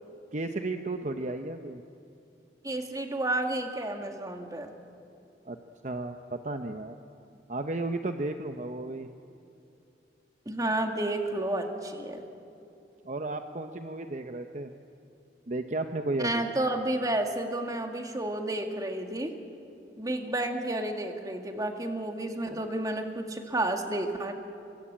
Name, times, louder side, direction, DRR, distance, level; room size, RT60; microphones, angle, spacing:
voice 1, 0.3-1.8 5.5-5.6 5.8-7.0 7.5-9.1 13.0-14.7 15.5-16.4 22.4-22.6, right 2 dB, 45° right, 6 dB, 0.8 m, -33 dB
voice 2, 2.6-4.7 10.5-12.2 16.2-19.3 20.0-24.3, right 1 dB, 20° right, 4 dB, 2.0 m, -31 dB
25.0 x 23.0 x 8.9 m, 2.6 s
head